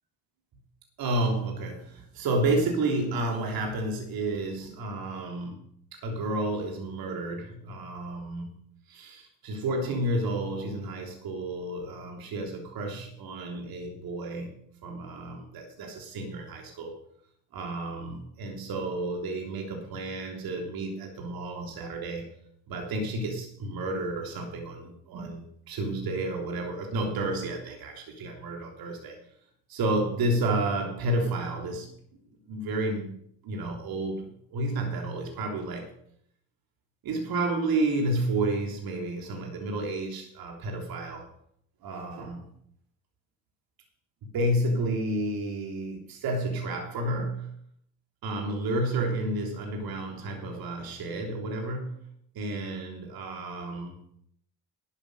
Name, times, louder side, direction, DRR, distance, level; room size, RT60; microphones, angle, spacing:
voice 1, 1.0-5.6 5.9-8.5 8.9-14.5 14.8-17.0 17.5-22.3 22.7-29.2 29.7-31.9 32.5-33.2 33.4-35.9 37.0-41.3 41.8-42.5 44.2-47.6 48.2-52.0 52.3-54.0, right 2 dB, 50° right, 2 dB, 3.3 m, -31 dB
11.5 x 8.6 x 6.6 m, 0.67 s
hypercardioid pair, 70°, 46 cm